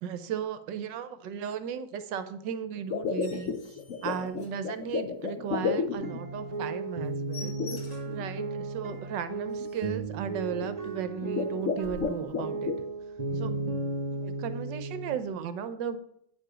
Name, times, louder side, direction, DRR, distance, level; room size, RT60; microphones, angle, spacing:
voice 1, 0.0-7.6 8.1-12.7 13.3-13.5 14.1-16.0, right 8 dB, 70° right, 11 dB, 1.2 m, -36 dB
sound 1, 2.8-6.4 7.6-8.3 8.9-9.0 9.6-9.9 10.5-10.8 11.2-12.8, left 5 dB, 85° left, 0.6 m, -32 dB
sound 2, 3.0-5.2 5.6-5.8 6.1-6.2 6.5-6.7 6.9-8.3 8.7-8.8 9.2-9.3 9.5-10.0 10.8-10.9, left 5 dB, 60° left, 2.2 m, -49 dB
sound 3, 5.9-15.3, right 3 dB, 50° right, 0.4 m, -35 dB
8.8 x 4.7 x 5.0 m, 0.70 s
omnidirectional pair, 2.2 m